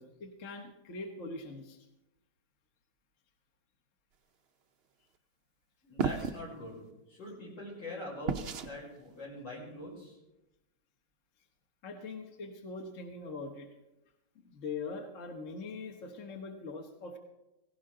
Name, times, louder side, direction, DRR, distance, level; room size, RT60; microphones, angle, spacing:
voice 1, 0.0-1.8 11.8-13.7 14.4-17.2, left 3 dB, 45° left, 4 dB, 1.5 m, -42 dB
voice 2, 5.8-6.8 7.1-10.2, left 1 dB, 80° left, -3 dB, 6.2 m, -43 dB
sound 1, 6.0-6.4 8.3-8.7, right 6 dB, 60° right, 0.6 m, -32 dB
17.0 x 17.0 x 3.8 m, 0.95 s
omnidirectional pair, 2.0 m